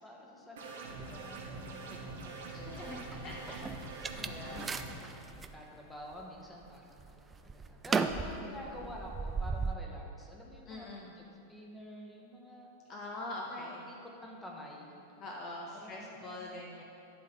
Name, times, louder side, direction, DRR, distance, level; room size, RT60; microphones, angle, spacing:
voice 1, 0.0-3.6 4.2-4.7 5.1-12.7 13.5-15.0 15.7-16.7, equal, 5° left, -1 dB, 1.2 m, -49 dB
sound 1, 0.6-4.9, right 3 dB, 60° right, 1.2 m, -44 dB
voice 2, 2.5-3.7 4.2-4.7 8.6-9.0 10.7-11.1 12.9-13.8 15.2-16.8, left 2 dB, 30° left, -1 dB, 0.8 m, -44 dB
sound 2, 2.8-5.6 6.1-6.6 7.0-9.8, right 4 dB, 15° right, 0.3 m, -36 dB
11.0 x 4.0 x 5.6 m, 2.7 s
figure-of-eight pair, 90°, 0 cm